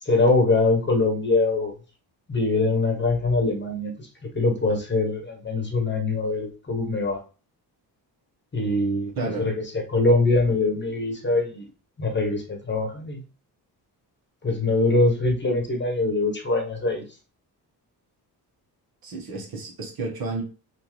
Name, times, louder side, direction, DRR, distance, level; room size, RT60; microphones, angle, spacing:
voice 1, 0.0-1.7 2.3-4.1 4.3-7.2 8.5-11.7 12.0-13.2 14.4-17.0, left 2 dB, 25° left, 2 dB, 1.1 m, -23 dB
voice 2, 9.1-9.5 19.0-20.4, right 3 dB, 60° right, 0 dB, 1.4 m, -31 dB
3.6 x 2.7 x 3.1 m, 0.34 s
cardioid pair, 95°, 40 cm